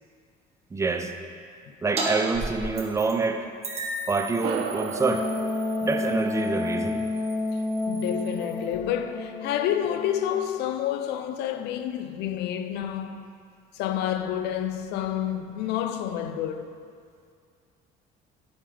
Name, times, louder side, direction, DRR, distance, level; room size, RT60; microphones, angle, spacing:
voice 1, 0.7-1.1 1.8-3.5 4.1-5.3 5.8-7.0, right 4 dB, 15° right, 0.5 m, -26 dB
sound 1, 2.0-2.1 2.3-3.2 3.6-8.7, right 2 dB, 40° right, 1.3 m, -37 dB
sound 2, 4.4-9.2, right 6 dB, 85° right, 0.5 m, -37 dB
Wind instrument woodwind instrument, 5.0-10.5, left 2 dB, 20° left, 0.7 m, -30 dB
voice 2, 7.9-13.3 13.7-16.7, left 10 dB, 85° left, 0.5 m, -29 dB
8.5 x 5.3 x 3.4 m
cardioid pair, 110°, 17 cm